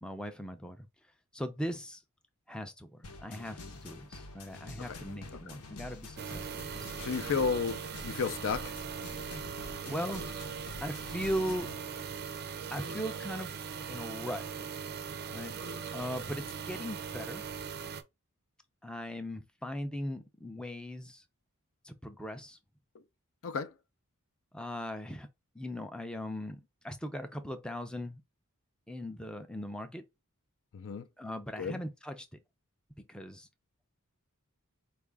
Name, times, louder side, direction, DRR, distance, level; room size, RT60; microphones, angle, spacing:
voice 1, 0.0-0.9 1.3-2.0 2.5-6.9 9.5-10.5 10.8-11.7 12.7-13.5 13.8-14.5 15.3-15.6 15.9-17.4 18.8-21.2 21.8-22.6 24.5-25.3 25.5-28.2 28.9-30.1 31.2-32.3 33.1-33.5, equal, 5° left, 0.4 m, -39 dB
sound 1, 3.0-11.8, left 2 dB, 85° left, 0.8 m, -47 dB
sound 2, 6.2-18.0, right 6 dB, 50° right, 0.5 m, -40 dB
voice 2, 7.0-8.7 23.4-23.7 30.7-31.1 31.6-31.8, left 5 dB, 60° left, 0.5 m, -32 dB
4.6 x 2.4 x 3.3 m
head